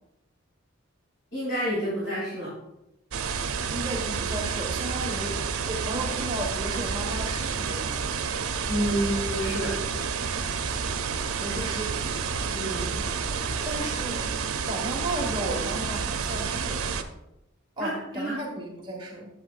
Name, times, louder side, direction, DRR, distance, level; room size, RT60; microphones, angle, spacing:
voice 1, 1.3-2.5 8.7-9.7 12.5-13.0 17.8-18.3, equal, 55° left, -6 dB, 2.6 m, -29 dB
sound 1, 3.1-17.0, right 5 dB, 85° right, 0.6 m, -30 dB
voice 2, 3.7-8.0 11.4-12.3 13.3-14.3 14.7-16.9 17.8-19.3, right 1 dB, 25° right, -1 dB, 1.4 m, -34 dB
10.5 x 8.1 x 2.5 m, 0.88 s
head